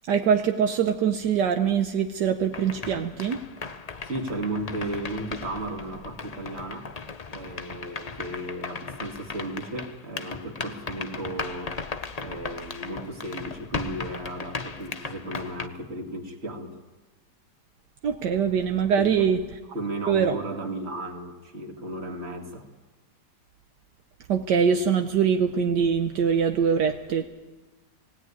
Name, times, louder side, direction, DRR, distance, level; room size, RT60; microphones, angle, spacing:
voice 1, 0.1-3.4 18.0-19.4 20.1-20.4 24.3-27.2, right 7 dB, 75° right, 6 dB, 1.5 m, -23 dB
sound 1, 2.5-15.7, left 4 dB, 40° left, 0.5 m, -37 dB
voice 2, 4.0-6.9 7.3-11.8 12.2-16.8 19.0-19.3 19.7-22.7, right 1 dB, 35° right, 4 dB, 2.4 m, -34 dB
19.0 x 16.5 x 9.6 m, 1.2 s
omnidirectional pair, 1.9 m